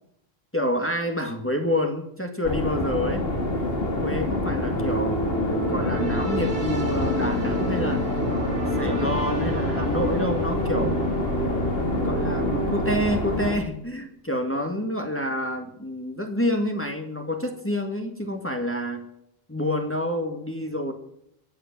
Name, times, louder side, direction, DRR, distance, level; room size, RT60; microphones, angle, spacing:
voice 1, 0.5-3.2 4.0-8.1 8.8-11.0 11.9-19.0 19.5-20.9, left 1 dB, 10° left, 4 dB, 1.8 m, -28 dB
sound 1, 2.4-13.6, left 2 dB, 70° left, 2.4 m, -27 dB
sound 2, 4.7-13.0, right 1 dB, 85° right, 6.2 m, -29 dB
23.0 x 8.3 x 6.0 m, 0.74 s
omnidirectional pair, 1.0 m